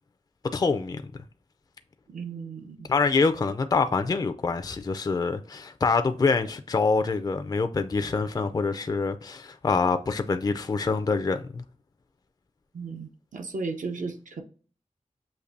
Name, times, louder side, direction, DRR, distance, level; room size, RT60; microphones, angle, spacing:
voice 1, 0.5-1.0 2.9-11.6, left 4 dB, 30° left, 0.4 m, -25 dB
voice 2, 2.1-2.9 12.7-14.4, right 4 dB, 80° right, 0.8 m, -35 dB
6.5 x 2.6 x 2.5 m
wide cardioid pair, 80°, 13 cm